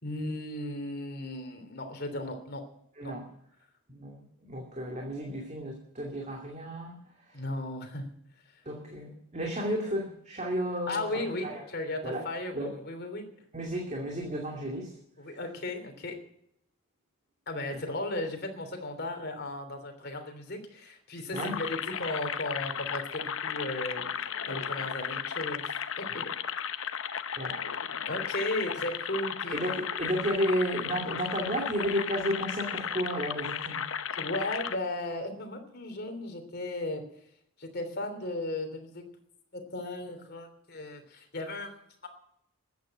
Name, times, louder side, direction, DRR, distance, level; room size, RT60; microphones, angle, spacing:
voice 1, 0.0-2.6 3.0-3.1 7.3-8.0 10.9-13.3 15.2-16.2 17.5-24.0 24.5-25.7 26.0-26.3 28.1-29.6 34.2-37.0 37.6-39.0 39.5-41.7, left 2 dB, 50° left, 6 dB, 3.2 m, -35 dB
voice 2, 2.9-3.3 3.9-7.0 7.3-7.4 8.6-11.6 12.0-12.3 12.5-12.7 13.5-15.0 15.3-15.4 17.7-17.8 21.3-21.6 27.0-27.1 27.4-27.6 29.5-34.0, equal, 35° right, 0 dB, 2.5 m, -33 dB
sound 1, 21.4-34.8, left 8 dB, 65° left, 0.9 m, -35 dB
14.0 x 9.4 x 9.0 m, 0.72 s
head